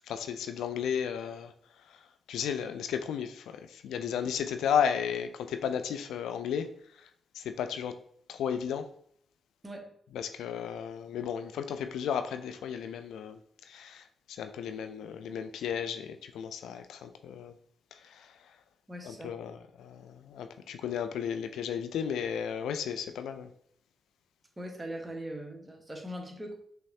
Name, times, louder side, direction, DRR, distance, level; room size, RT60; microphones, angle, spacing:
voice 1, 0.1-7.1 7.3-8.0 8.3-8.9 10.1-17.6 17.9-18.6 19.0-23.5, left 8 dB, 80° left, 8 dB, 0.3 m, -34 dB
voice 2, 18.9-19.3 24.6-26.6, equal, 20° right, 2 dB, 1.2 m, -40 dB
5.7 x 3.0 x 2.7 m, 0.66 s
supercardioid pair, 45°, 0 cm